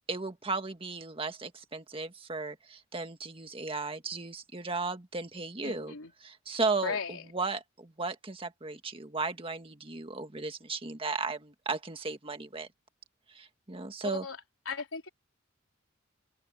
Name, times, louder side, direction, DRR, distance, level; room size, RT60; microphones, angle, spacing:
voice 1, 0.1-5.9 6.2-7.0 7.3-12.7 13.3-14.2, right 3 dB, 25° right, 1.7 m, -35 dB
voice 2, 5.6-6.1 6.8-7.2 14.0-14.4 14.7-15.1, left 5 dB, 85° left, 3.8 m, -36 dB
head